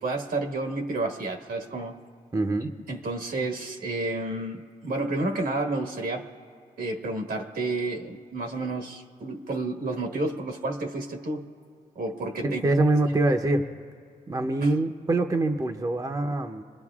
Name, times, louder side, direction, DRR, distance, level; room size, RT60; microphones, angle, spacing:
voice 1, 0.0-2.0 2.9-6.3 6.8-11.4 11.9-12.6 14.6-14.7, right 2 dB, 75° right, 3 dB, 1.5 m, -30 dB
voice 2, 2.3-2.7 12.4-13.7 14.3-16.6, right 2 dB, 25° right, 5 dB, 0.7 m, -24 dB
26.5 x 20.5 x 2.4 m, 2.1 s
cardioid pair, 85°, 15 cm